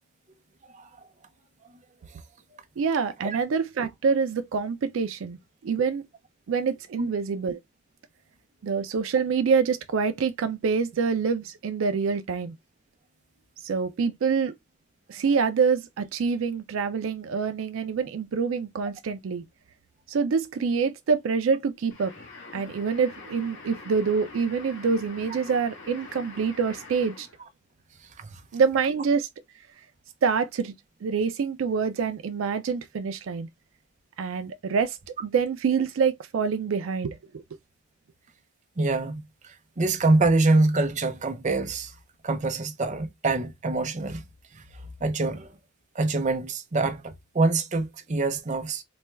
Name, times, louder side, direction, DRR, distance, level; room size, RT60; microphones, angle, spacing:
voice 1, 2.8-5.4 5.6-6.0 6.5-7.6 8.6-12.5 13.6-14.5 15.1-19.4 20.1-22.1 22.5-27.3 28.5-29.3 30.2-30.7 31.0-33.5 34.2-37.4, right 5 dB, 80° right, 0.4 m, -26 dB
sound 1, 21.9-27.4, left 3 dB, 65° left, 1.2 m, -45 dB
voice 2, 38.8-39.2 39.8-41.9 42.2-44.2 45.0-45.5 45.9-48.8, right 2 dB, 40° right, 0.6 m, -25 dB
4.2 x 2.2 x 3.3 m
head